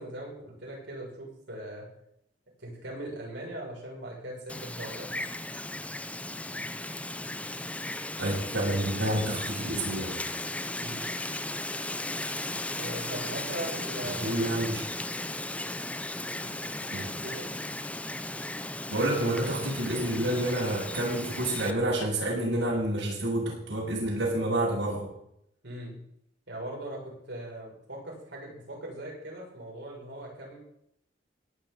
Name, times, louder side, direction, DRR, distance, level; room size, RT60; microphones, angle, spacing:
voice 1, 0.0-1.9 2.6-5.2 10.8-11.1 12.8-14.4 16.4-16.6 17.0-17.5 25.6-26.0 26.5-30.6, right 1 dB, 70° right, -2 dB, 7.3 m, -40 dB
Wind, 4.5-21.7, left 2 dB, 5° left, 0.7 m, -36 dB
voice 2, 8.2-10.1 14.2-14.8 16.9-17.1 18.9-25.1, right 1 dB, 90° right, -5 dB, 7.2 m, -29 dB
17.5 x 6.2 x 9.3 m, 0.75 s
head